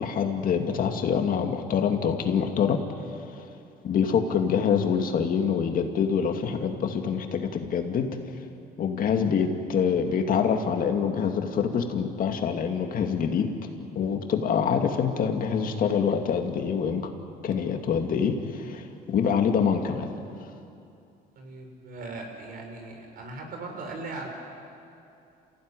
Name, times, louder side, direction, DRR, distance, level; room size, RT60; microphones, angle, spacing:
voice 1, 0.0-2.8 3.4-3.5 3.8-8.2 8.8-13.5 14.0-17.1 17.4-20.1, left 7 dB, 55° left, 5 dB, 2.3 m, -25 dB
voice 2, 21.4-24.3, right 3 dB, 60° right, 3 dB, 5.7 m, -39 dB
28.0 x 16.0 x 9.9 m, 2.6 s
cardioid pair, 110°, 17 cm